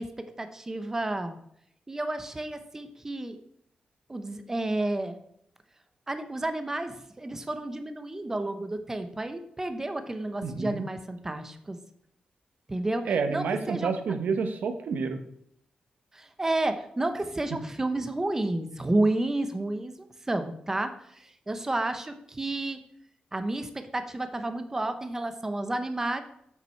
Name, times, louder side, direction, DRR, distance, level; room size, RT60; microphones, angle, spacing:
voice 1, 0.0-1.4 1.9-3.4 4.1-5.2 6.1-11.8 12.7-13.9 16.1-19.9 20.3-22.8 23.3-26.2, right 2 dB, 15° right, 8 dB, 0.7 m, -31 dB
voice 2, 10.4-10.8 13.1-15.2, right 5 dB, 85° right, 8 dB, 1.0 m, -29 dB
8.0 x 6.0 x 4.5 m, 0.71 s
wide cardioid pair, 165°, 3 cm